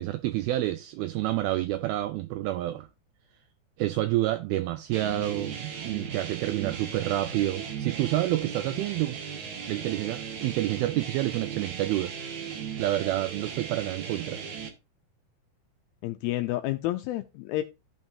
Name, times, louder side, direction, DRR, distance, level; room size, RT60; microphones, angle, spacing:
voice 1, 0.0-2.9 3.8-9.2 9.7-12.1 12.8-14.4, right 15 dB, 85° right, 2.1 m, -28 dB
sound 1, 4.9-14.7, right 6 dB, 55° right, 2.3 m, -37 dB
voice 2, 16.0-17.6, left 16 dB, 85° left, 2.2 m, -30 dB
14.5 x 5.4 x 2.7 m
omnidirectional pair, 4.9 m